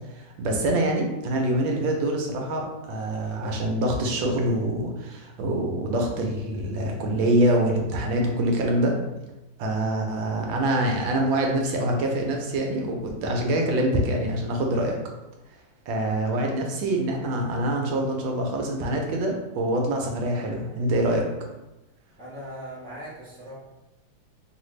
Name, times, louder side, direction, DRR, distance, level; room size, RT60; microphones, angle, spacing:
voice 1, 0.1-8.9 9.6-15.0 15.9-21.2, right 1 dB, 75° right, 1 dB, 1.3 m, -25 dB
voice 2, 22.2-23.5, equal, 5° left, -9 dB, 0.7 m, -39 dB
3.3 x 2.5 x 3.0 m, 1.0 s
omnidirectional pair, 2.2 m